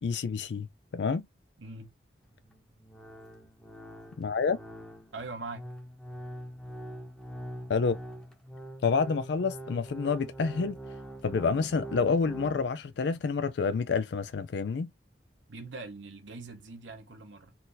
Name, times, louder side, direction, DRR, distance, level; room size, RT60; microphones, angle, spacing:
voice 1, 0.0-0.7 0.9-1.3 4.2-4.6 7.7-8.0 8.8-10.8 11.2-14.9, left 5 dB, 65° left, 0.4 m, -28 dB
voice 2, 1.6-1.9 5.1-5.7 15.5-17.6, right 3 dB, 80° right, 1.1 m, -42 dB
sound 1, 2.2-12.7, right 1 dB, 5° left, 0.9 m, -43 dB
4.2 x 2.6 x 3.9 m
head